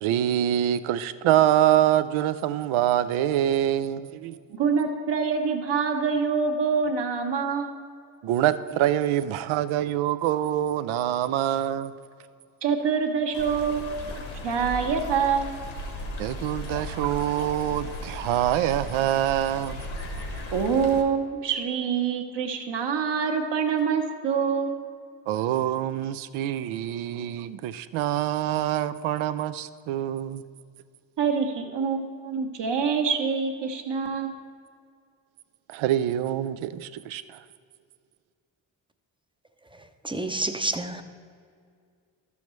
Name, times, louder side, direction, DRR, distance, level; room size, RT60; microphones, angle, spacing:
voice 1, 0.0-4.4 8.2-11.9 16.2-19.9 25.3-30.4 35.7-37.4, right 12 dB, 80° right, 13 dB, 0.6 m, -25 dB
voice 2, 4.5-7.7 12.6-15.5 20.5-24.8 31.2-34.3, right 6 dB, 60° right, 4 dB, 1.2 m, -26 dB
Stream, 13.3-21.0, left 1 dB, 75° left, 1.4 m, -36 dB
voice 3, 40.0-41.0, right 2 dB, 10° right, 7 dB, 0.6 m, -28 dB
12.0 x 7.0 x 3.1 m, 2.2 s
supercardioid pair, 60°, 48 cm